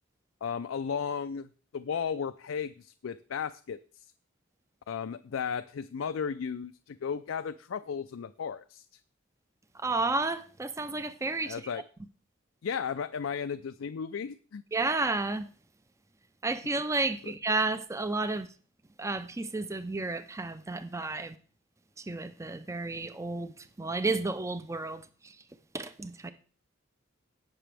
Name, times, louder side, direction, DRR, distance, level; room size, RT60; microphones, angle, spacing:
voice 1, 0.4-4.1 4.9-8.9 11.5-11.8 12.6-14.6, left 6 dB, 85° left, 0.4 m, -35 dB
voice 2, 9.7-11.6 14.7-15.5 16.4-18.5 19.0-21.4 22.0-25.4 25.7-26.3, right 3 dB, 15° right, 0.5 m, -32 dB
17.5 x 5.9 x 3.4 m
head